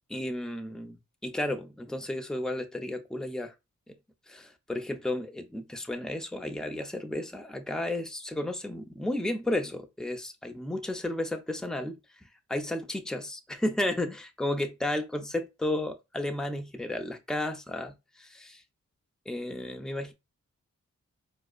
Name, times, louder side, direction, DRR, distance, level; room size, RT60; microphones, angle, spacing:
voice 1, 0.1-3.5 4.3-12.0 12.5-18.6 19.3-20.1, left 1 dB, ahead, 0.6 m, -33 dB
4.6 x 2.0 x 2.4 m
cardioid pair, 60°, 31 cm